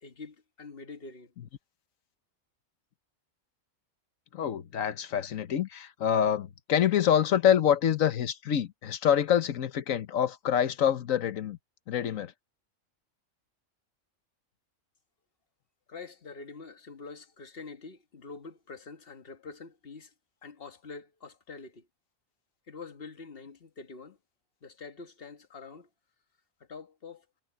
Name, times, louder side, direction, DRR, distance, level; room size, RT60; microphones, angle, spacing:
voice 1, 0.0-1.3 15.9-20.1 20.4-21.9 22.7-24.2 24.6-25.9 26.7-27.2, left 4 dB, 45° left, 1.6 m, -45 dB
voice 2, 4.3-11.6 11.9-12.3, left 9 dB, 85° left, 1.4 m, -26 dB
omnidirectional pair, 1.4 m